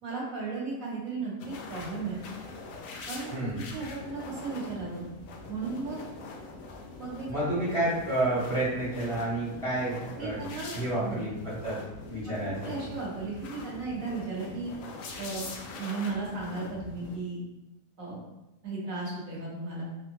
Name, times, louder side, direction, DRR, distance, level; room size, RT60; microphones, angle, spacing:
voice 1, 0.0-2.2 3.1-5.1 5.5-6.0 7.0-7.5 10.2-11.3 12.3-14.7 15.2-15.5 15.8-17.4 18.0-18.2 18.6-19.8, right 4 dB, 60° right, -4 dB, 1.3 m, -35 dB
sound 1, 1.4-17.2, left 3 dB, 65° left, 0.9 m, -43 dB
voice 2, 3.3-3.6 7.3-10.4 10.7-11.8 12.1-12.7, right 1 dB, 20° left, -10 dB, 1.4 m, -30 dB
3.5 x 3.2 x 2.9 m, 0.96 s
omnidirectional pair, 1.8 m